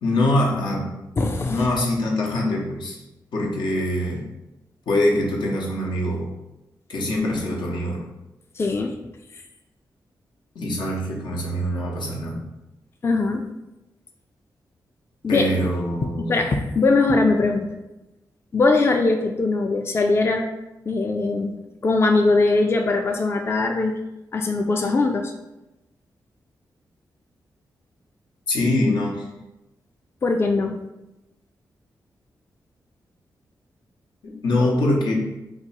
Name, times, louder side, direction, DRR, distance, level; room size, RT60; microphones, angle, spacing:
voice 1, 0.0-0.9 1.4-3.0 3.3-4.3 4.9-6.3 6.9-8.0 10.5-12.4 15.3-16.4 28.5-29.2 34.2-35.1, left 1 dB, 80° left, -2 dB, 0.7 m, -23 dB
voice 2, 1.2-1.6 8.6-9.0 13.0-13.4 15.2-15.4 16.3-17.8 18.5-20.4 20.9-24.0 24.3-25.3 30.2-30.7, left 3 dB, 30° left, 4 dB, 0.3 m, -21 dB
2.7 x 2.2 x 4.0 m, 0.96 s
cardioid pair, 65°, 8 cm